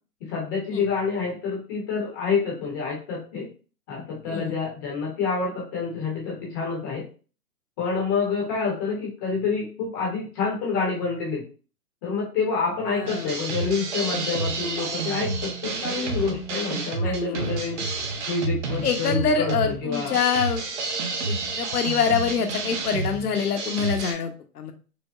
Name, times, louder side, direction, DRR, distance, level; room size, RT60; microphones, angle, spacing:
voice 1, 0.3-3.5 3.9-7.0 7.8-11.4 12.0-17.8 18.3-20.2, left 5 dB, 15° left, -3 dB, 0.7 m, -27 dB
voice 2, 12.9-13.4 17.0-17.5 18.8-20.6 21.2-24.7, left 6 dB, 70° left, 6 dB, 0.9 m, -25 dB
sound 1, 13.0-24.1, right 3 dB, 50° right, 0.8 m, -30 dB
5.1 x 2.0 x 2.4 m, 0.36 s
hypercardioid pair, 150°, 46 cm